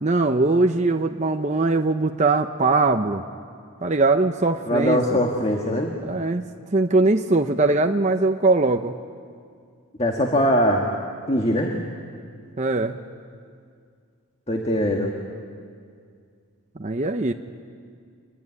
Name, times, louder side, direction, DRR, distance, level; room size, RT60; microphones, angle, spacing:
voice 1, 0.0-3.2 3.8-5.0 6.0-6.4 6.7-8.9 12.6-12.9 16.8-17.3, right 3 dB, 30° right, 5 dB, 0.7 m, -21 dB
voice 2, 4.7-6.0 10.0-10.9 11.3-11.7 14.5-15.1, equal, 25° left, 0 dB, 1.8 m, -21 dB
25.5 x 22.0 x 9.7 m, 2.2 s
head